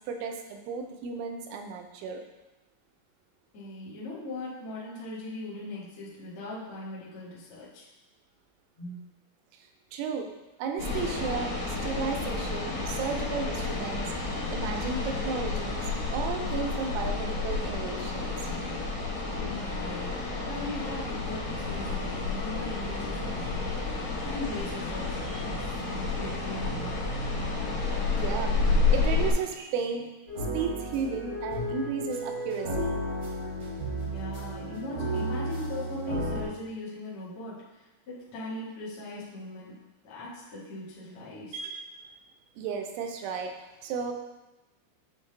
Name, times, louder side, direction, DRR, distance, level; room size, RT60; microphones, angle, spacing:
voice 1, 0.1-2.2 9.9-10.3 10.6-11.5 11.8-14.1 14.5-18.5 28.2-30.1 30.5-33.0 41.5-42.1 42.6-43.6 43.8-44.1, right 6 dB, 85° right, 4 dB, 3.1 m, -34 dB
voice 2, 3.5-7.9 8.8-9.0 19.2-27.0 34.0-39.7 40.0-41.5, left 2 dB, 85° left, -9 dB, 1.2 m, -39 dB
sound 1, 10.8-29.3, left 3 dB, 65° left, 2.3 m, -30 dB
sound 2, 30.3-36.4, right 1 dB, 55° right, 1.3 m, -33 dB
8.3 x 4.0 x 3.3 m, 1.1 s
omnidirectional pair, 5.6 m